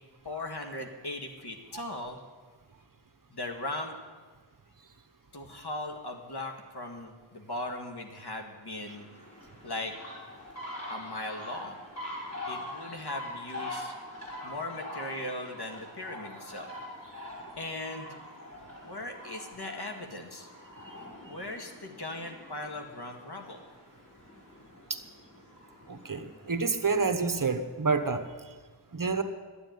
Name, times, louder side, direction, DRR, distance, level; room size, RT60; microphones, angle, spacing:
voice 1, 0.2-2.2 3.3-4.0 5.3-9.1 9.6-9.9 10.9-11.8 12.5-13.9 14.4-16.7 17.6-18.2 18.8-20.5 21.3-23.6, left 2 dB, 55° left, 4 dB, 2.1 m, -38 dB
sound 1, 8.8-27.0, left 1 dB, 35° left, 5.9 m, -44 dB
voice 2, 25.9-28.2 28.9-29.2, right 4 dB, 45° right, 9 dB, 1.2 m, -28 dB
12.0 x 9.5 x 9.4 m, 1.4 s
wide cardioid pair, 55°, 46 cm